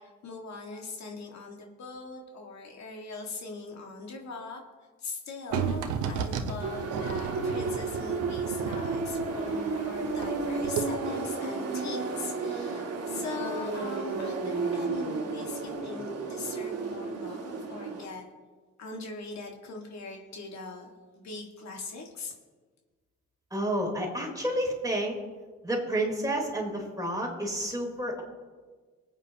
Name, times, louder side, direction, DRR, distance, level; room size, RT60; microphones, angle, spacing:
voice 1, 0.0-4.6 5.0-18.3 18.8-22.4, left 3 dB, 65° left, 1 dB, 1.9 m, -41 dB
sound 1, 5.5-10.4 10.6-10.8, right 7 dB, 90° right, 1.1 m, -33 dB
sound 2, 6.6-18.1, right 4 dB, 55° right, 2.0 m, -32 dB
voice 2, 23.5-25.2 25.6-28.2, right 1 dB, 10° right, -2 dB, 3.7 m, -30 dB
22.5 x 9.0 x 2.9 m, 1.4 s
cardioid pair, 90°, 30 cm